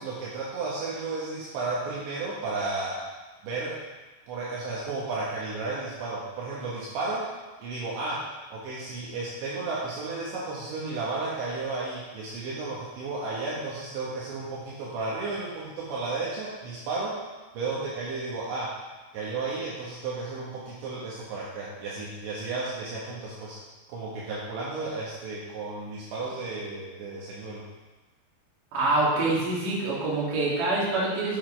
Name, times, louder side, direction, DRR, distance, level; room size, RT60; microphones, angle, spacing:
voice 1, 0.0-3.0 3.4-3.8 4.3-7.3 7.6-17.2 17.5-18.8 19.1-23.6 23.9-27.6, right 3 dB, 70° right, -6 dB, 3.4 m, -33 dB
voice 2, 28.7-31.4, right 2 dB, 50° right, -6 dB, 3.1 m, -25 dB
8.0 x 7.4 x 4.4 m, 1.2 s
omnidirectional pair, 5.8 m